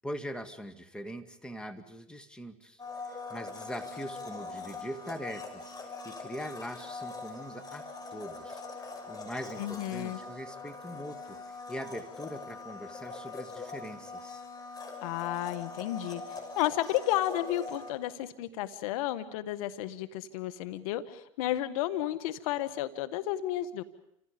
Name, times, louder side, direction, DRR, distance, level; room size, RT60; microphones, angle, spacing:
voice 1, 0.0-2.8 3.1-5.7 6.0-7.8 8.1-8.6 9.1-14.4, equal, 5° left, 6 dB, 2.4 m, -42 dB
Domestic sounds home sounds, 2.8-17.9, left 3 dB, 20° left, 6.0 m, -42 dB
voice 2, 9.6-10.2 15.0-23.8, left 13 dB, 75° left, 11 dB, 1.8 m, -32 dB
29.5 x 27.0 x 5.4 m, 0.75 s
hypercardioid pair, 95°, 18 cm